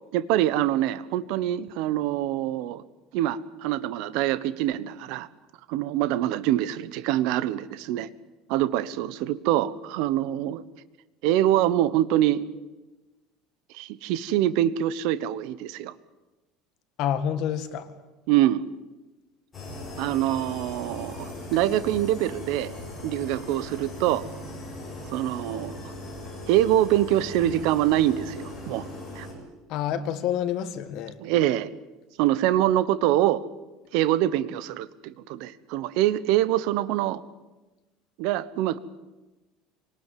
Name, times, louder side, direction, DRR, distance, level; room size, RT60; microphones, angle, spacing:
voice 1, 0.1-2.8 3.1-5.3 5.7-8.1 8.5-10.6 11.2-12.4 13.7-15.9 18.3-18.6 20.0-22.7 23.0-24.2 25.1-25.9 26.5-28.9 29.1-29.3 31.2-31.7 32.2-33.4 33.9-37.2 38.2-38.8, right 13 dB, 60° right, 15 dB, 1.0 m, -24 dB
voice 2, 17.0-17.9 29.7-31.2, left 9 dB, 45° left, 10 dB, 1.9 m, -28 dB
sound 1, 19.5-29.3, left 1 dB, 15° left, 7.1 m, -39 dB
25.0 x 19.0 x 9.3 m, 1.1 s
cardioid pair, 175°, 0 cm